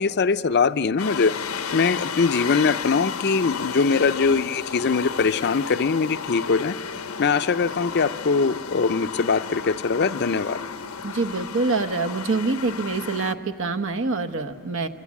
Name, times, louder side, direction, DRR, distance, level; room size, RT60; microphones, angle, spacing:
voice 1, 0.0-1.3 1.7-6.8 7.2-10.6, left 4 dB, 50° left, 12 dB, 0.5 m, -22 dB
sound 1, 1.0-13.3, left 6 dB, 85° left, 0.8 m, -33 dB
voice 2, 11.0-14.9, right 3 dB, 60° right, 7 dB, 1.1 m, -25 dB
26.0 x 25.5 x 8.5 m, 2.8 s
head